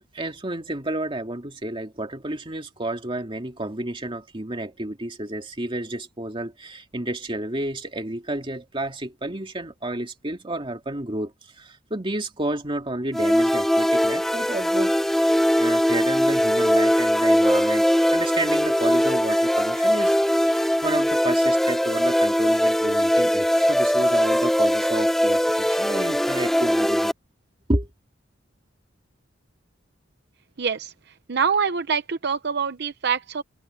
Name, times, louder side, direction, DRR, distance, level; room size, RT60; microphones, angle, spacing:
voice 1, 0.1-15.3 15.6-20.2 20.4-27.1 27.7-27.9, right 1 dB, 25° right, 2.4 m, -31 dB
sound 1, 13.1-27.1, equal, ahead, 0.4 m, -21 dB
voice 2, 30.6-30.9 31.3-33.4, right 6 dB, 60° right, 0.7 m, -25 dB
head